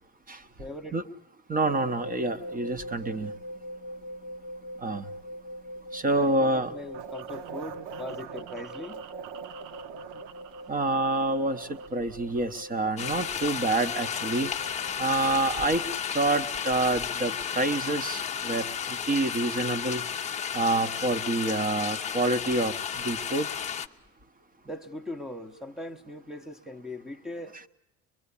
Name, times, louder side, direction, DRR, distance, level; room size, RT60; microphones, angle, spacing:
voice 1, 0.6-1.0 6.2-9.0 24.6-27.7, left 1 dB, ahead, 1.0 m, -40 dB
voice 2, 1.5-3.3 4.8-5.0 5.9-6.7 10.7-14.5 15.0-15.8 16.1-18.6 19.1-20.0 20.5-22.7 23.0-23.5, right 2 dB, 25° right, 1.1 m, -27 dB
sound 1, 1.6-16.0, equal, 40° right, 1.3 m, -43 dB
sound 2, 6.9-12.9, right 10 dB, 85° right, 1.0 m, -44 dB
sound 3, 13.0-23.9, left 8 dB, 20° left, 0.8 m, -33 dB
24.0 x 23.0 x 8.4 m
cardioid pair, 140°, 36 cm